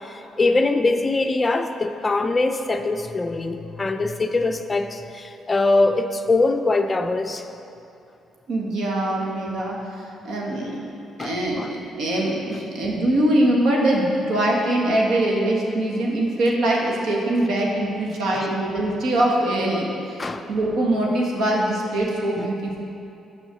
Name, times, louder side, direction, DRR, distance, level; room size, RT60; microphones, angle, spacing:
voice 1, 0.0-7.5 11.2-11.7 18.4-18.6 20.2-20.5 22.4-22.5, left 2 dB, 25° left, 7 dB, 0.5 m, -23 dB
voice 2, 8.5-9.8 10.2-10.8 11.2-22.8, right 1 dB, 75° right, -2 dB, 1.8 m, -22 dB
7.5 x 5.5 x 7.5 m, 2.8 s
cardioid pair, 90°, 0 cm